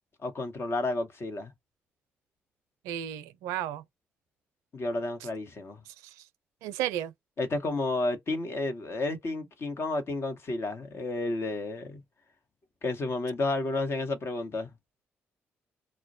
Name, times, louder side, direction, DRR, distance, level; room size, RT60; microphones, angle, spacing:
voice 1, 0.2-1.5 4.7-5.8 7.4-12.0 12.8-14.7, left 2 dB, 50° left, 1.0 m, -31 dB
voice 2, 2.8-3.8 6.6-7.1, right 11 dB, 85° right, 0.4 m, -33 dB
2.2 x 2.1 x 2.7 m
hypercardioid pair, 50°, 5 cm